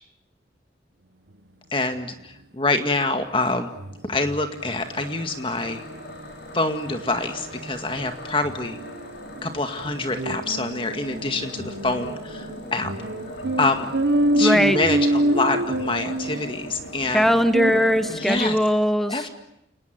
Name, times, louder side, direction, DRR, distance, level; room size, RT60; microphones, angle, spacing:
voice 1, 1.7-3.7 4.0-5.8 6.5-8.8 9.4-12.9 13.6-13.9 14.4-17.3 18.1-18.6 19.1-19.3, left 2 dB, 30° left, 6 dB, 2.0 m, -26 dB
sound 1, 2.9-3.0 3.3-3.4 3.8-18.2, right 1 dB, 70° right, 1.3 m, -28 dB
sound 2, 4.6-18.6, left 1 dB, 65° left, 6.2 m, -40 dB
voice 2, 14.3-14.8 17.1-19.3, equal, ahead, 9 dB, 1.1 m, -20 dB
29.5 x 19.5 x 9.5 m, 0.80 s
head